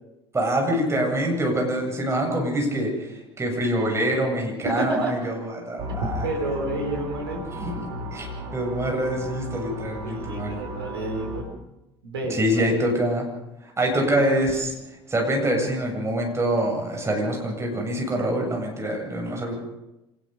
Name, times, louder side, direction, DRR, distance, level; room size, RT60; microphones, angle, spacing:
voice 1, 0.3-6.2 7.6-8.3 8.5-10.6 12.3-13.3 13.6-14.7 15.1-19.5, right 1 dB, 20° right, 1 dB, 7.6 m, -25 dB
voice 2, 4.6-5.3 6.0-7.4 10.0-11.5 12.0-12.6, right 1 dB, 75° right, 0 dB, 4.3 m, -29 dB
sound 1, 5.8-11.4, equal, 60° right, 3.5 m, -35 dB
26.5 x 19.5 x 5.4 m, 0.95 s
figure-of-eight pair, 60°, 13 cm